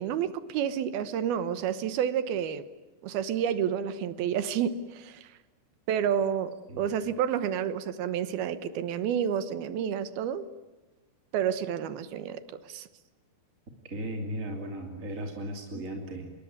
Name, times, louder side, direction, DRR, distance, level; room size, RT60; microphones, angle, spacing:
voice 1, 0.0-2.6 3.0-5.3 5.9-10.4 11.3-12.9 15.7-15.8, right 8 dB, 70° right, 13 dB, 2.8 m, -30 dB
voice 2, 13.8-16.3, right 1 dB, 25° right, 3 dB, 2.3 m, -36 dB
27.0 x 22.5 x 9.5 m, 1.2 s
omnidirectional pair, 5.1 m